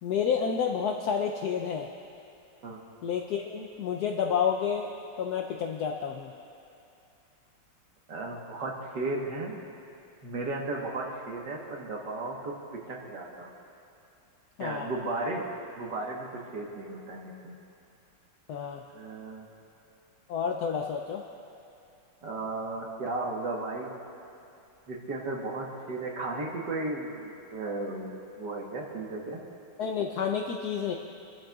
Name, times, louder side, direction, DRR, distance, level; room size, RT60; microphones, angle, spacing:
voice 1, 0.0-1.9 3.0-4.9 5.2-6.3 14.6-14.9 18.5-18.8 20.3-21.2 29.8-30.9, left 7 dB, 75° left, 2 dB, 0.9 m, -30 dB
voice 2, 8.1-9.6 10.2-13.5 14.6-15.5 15.8-17.6 18.9-19.5 22.2-23.9 24.9-29.4, right 2 dB, 60° right, -1 dB, 1.9 m, -35 dB
28.5 x 11.5 x 2.4 m, 2.6 s
omnidirectional pair, 2.3 m